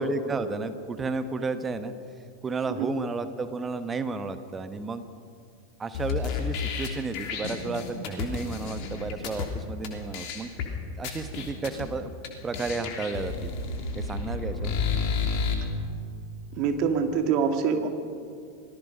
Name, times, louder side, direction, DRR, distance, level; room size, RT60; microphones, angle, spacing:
voice 1, 0.0-1.9 2.4-5.0 5.8-10.5 11.0-12.1 12.4-13.5 13.9-14.7, right 4 dB, 15° right, 10 dB, 1.3 m, -32 dB
sound 1, 5.9-9.5 9.8-9.9 10.1-10.7 11.0-11.9 12.2-12.3 12.5-15.5, left 5 dB, 45° left, 3.2 m, -31 dB
voice 2, 16.5-17.9, right 6 dB, 40° right, 6 dB, 2.1 m, -25 dB
26.5 x 18.5 x 5.3 m, 2.3 s
figure-of-eight pair, 90°, 0 cm